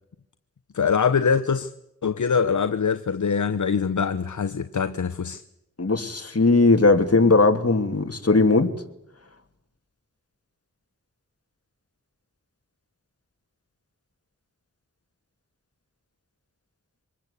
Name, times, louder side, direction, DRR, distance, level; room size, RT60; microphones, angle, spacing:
voice 1, 0.7-1.7 2.0-5.4, left 6 dB, 75° left, 0.9 m, -23 dB
voice 2, 5.8-8.7, left 3 dB, 50° left, 2.8 m, -18 dB
25.5 x 20.5 x 8.4 m
cardioid pair, 45°, 30 cm